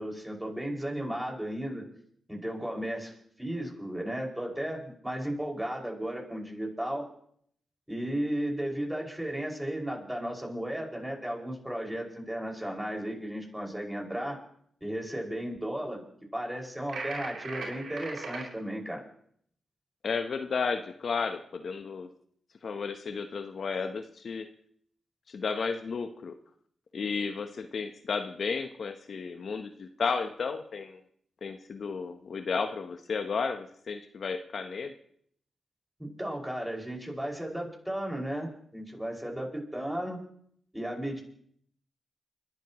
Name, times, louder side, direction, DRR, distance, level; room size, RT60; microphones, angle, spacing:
voice 1, 0.0-1.9 2.3-3.1 3.4-7.1 7.9-14.4 14.8-16.0 16.3-19.0 36.0-40.2 40.7-41.2, right 1 dB, 10° right, -1 dB, 5.7 m, -34 dB
sound 1, 16.9-18.5, right 3 dB, 75° right, 3.3 m, -38 dB
voice 2, 20.0-22.1 22.6-24.5 25.3-26.4 26.9-31.0 31.4-34.9, left 5 dB, 65° left, 8 dB, 0.9 m, -33 dB
30.0 x 12.0 x 3.1 m, 0.64 s
supercardioid pair, 40°, 0 cm